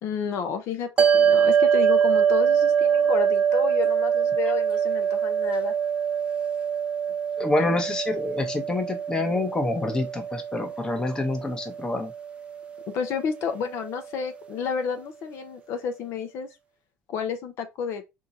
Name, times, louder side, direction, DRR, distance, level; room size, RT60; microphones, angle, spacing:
voice 1, 0.0-5.7 12.9-16.5 17.1-18.0, left 7 dB, 55° left, 0.7 m, -31 dB
sound 1, 1.0-13.5, right 8 dB, 20° right, 0.4 m, -24 dB
voice 2, 7.4-12.1, left 2 dB, 15° left, 0.9 m, -27 dB
3.8 x 2.8 x 4.0 m
cardioid pair, 150°, 5 cm